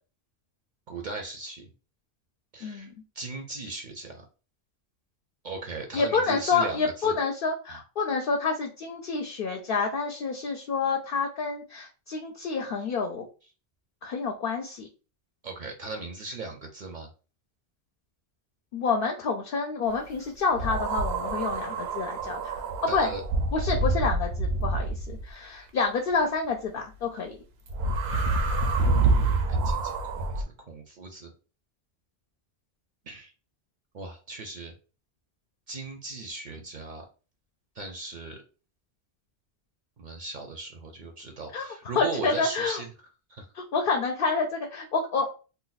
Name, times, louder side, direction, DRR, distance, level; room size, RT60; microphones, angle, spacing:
voice 1, 0.9-1.7 2.5-2.9 3.2-4.2 5.4-6.8 7.0-7.2 15.4-17.1 22.9-23.2 29.5-31.3 33.1-33.3 33.9-34.7 35.7-37.0 37.8-38.4 40.0-42.9 43.3-43.5, right 3 dB, 55° right, 3 dB, 0.6 m, -38 dB
voice 2, 2.6-2.9 5.9-13.3 14.0-14.9 18.7-22.6 22.9-23.1 23.5-27.4 41.5-41.7 41.9-42.8 43.5-45.3, left 4 dB, 65° left, 2 dB, 0.7 m, -28 dB
sound 1, 20.6-25.3 27.7-30.4, right 3 dB, 80° right, 0.9 m, -27 dB
2.6 x 2.2 x 3.9 m, 0.35 s
omnidirectional pair, 1.1 m